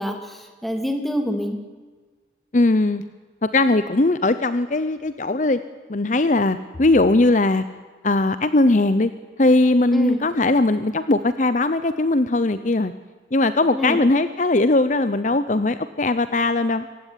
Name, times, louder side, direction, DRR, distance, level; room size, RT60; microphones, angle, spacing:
voice 1, 0.0-1.6 9.9-10.2 13.7-14.0, equal, ahead, 4 dB, 2.6 m, -26 dB
voice 2, 2.5-3.0 3.4-5.6 5.9-7.6 8.0-9.1 9.4-12.9 13.3-17.0, left 2 dB, 40° left, 13 dB, 0.7 m, -19 dB
26.0 x 15.5 x 10.0 m, 1.4 s
head